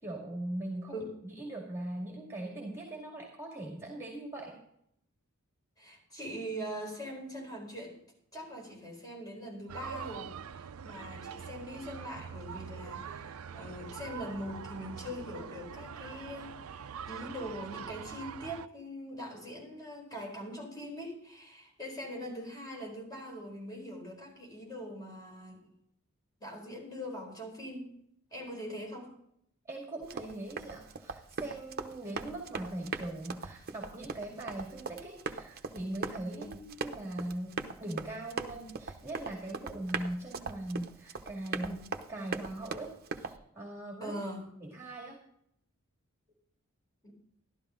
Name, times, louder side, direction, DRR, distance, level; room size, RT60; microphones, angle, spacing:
voice 1, 0.0-4.6 29.7-44.1 44.6-45.2, right 1 dB, 15° right, 0 dB, 2.2 m, -40 dB
voice 2, 5.8-8.0 8.3-16.8 17.1-25.7 26.4-27.9 28.3-29.1 36.3-36.6 44.0-44.5 47.0-47.1, equal, 20° left, -1 dB, 4.5 m, -42 dB
sound 1, 9.7-18.7, right 7 dB, 70° right, 0.5 m, -44 dB
Run, 30.0-43.4, right 4 dB, 45° right, 0.8 m, -40 dB
12.5 x 12.5 x 3.8 m, 0.72 s
head